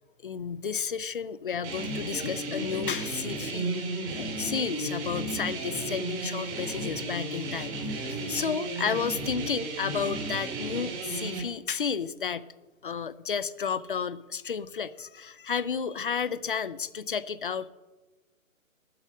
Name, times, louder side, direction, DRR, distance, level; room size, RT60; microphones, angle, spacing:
voice 1, 0.2-3.8 4.1-12.5 12.8-17.7, left 6 dB, 40° left, 17 dB, 0.5 m, -32 dB
sound 1, 1.6-11.4, right 2 dB, 15° right, 1.1 m, -34 dB
12.0 x 5.3 x 8.4 m, 1.2 s
figure-of-eight pair, 140°, 41 cm